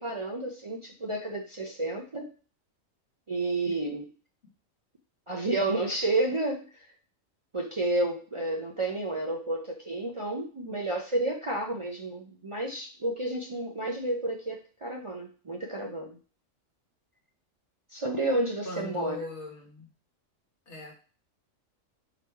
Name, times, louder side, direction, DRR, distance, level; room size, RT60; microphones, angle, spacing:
voice 1, 0.0-2.3 3.3-4.1 5.3-6.6 7.5-16.2 17.9-19.2, right 2 dB, 45° right, -1 dB, 0.4 m, -31 dB
voice 2, 18.6-19.9 20.7-20.9, left 3 dB, 60° left, 0 dB, 1.5 m, -39 dB
3.9 x 3.0 x 4.5 m, 0.38 s
omnidirectional pair, 1.4 m